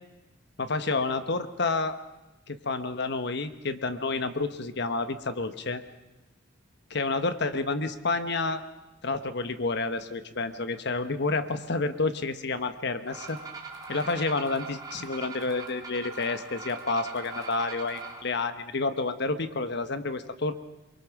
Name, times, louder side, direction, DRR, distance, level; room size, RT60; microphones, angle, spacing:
voice 1, 0.6-2.0 2.5-5.8 6.9-8.6 9.0-13.4 13.9-20.5, left 3 dB, 60° left, 10 dB, 1.2 m, -29 dB
sound 1, 13.1-18.2, right 4 dB, 20° right, 3.3 m, -41 dB
23.0 x 23.0 x 6.1 m, 0.98 s
head